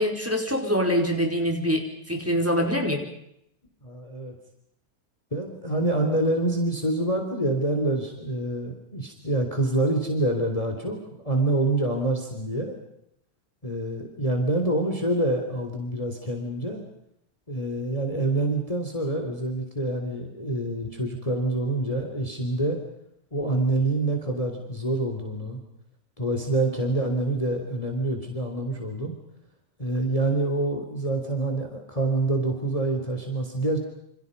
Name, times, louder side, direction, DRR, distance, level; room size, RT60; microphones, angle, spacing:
voice 1, 0.0-3.0, equal, 10° right, 1 dB, 5.0 m, -24 dB
voice 2, 3.8-4.3 5.3-11.0 11.2-12.8 13.6-16.8 17.5-22.8 23.3-25.6 26.2-29.2 29.8-33.8, right 2 dB, 20° left, 3 dB, 3.7 m, -26 dB
29.0 x 28.5 x 5.4 m, 0.76 s
omnidirectional pair, 1.8 m